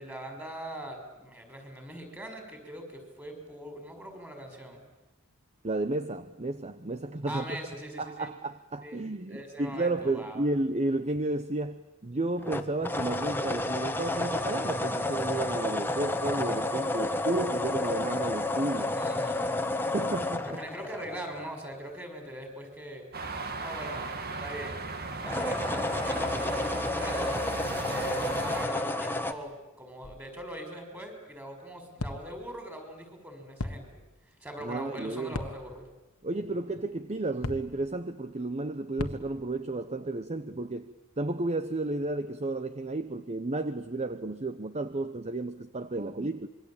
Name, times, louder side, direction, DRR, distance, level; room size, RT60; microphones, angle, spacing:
voice 1, 0.0-4.8 7.3-8.3 8.8-9.0 9.3-10.4 18.7-19.6 20.4-23.1 23.6-24.8 25.2-27.4 27.8-33.9 34.4-35.9, right 1 dB, 10° right, 5 dB, 5.8 m, -41 dB
voice 2, 5.6-7.6 8.0-18.9 19.9-20.6 34.6-35.4 36.2-46.5, right 2 dB, 30° right, 11 dB, 0.9 m, -32 dB
sound 1, 12.4-21.7 25.2-29.3, left 2 dB, 10° left, 1.5 m, -31 dB
sound 2, 23.1-28.7, right 3 dB, 45° right, 2.3 m, -36 dB
sound 3, 30.0-30.6 32.0-32.6 33.6-34.2 35.3-35.9 37.4-38.0 39.0-39.6, left 2 dB, 80° left, 1.7 m, -38 dB
26.5 x 23.0 x 8.8 m, 1.0 s
head